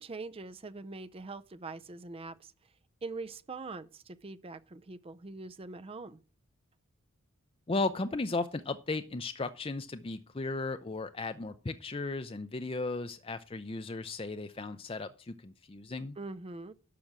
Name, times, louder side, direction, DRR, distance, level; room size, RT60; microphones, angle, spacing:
voice 1, 0.0-2.5 3.0-6.2 16.2-16.7, right 3 dB, 25° right, 0.5 m, -43 dB
voice 2, 7.7-16.2, left 3 dB, 25° left, 0.5 m, -35 dB
12.0 x 6.0 x 7.4 m
head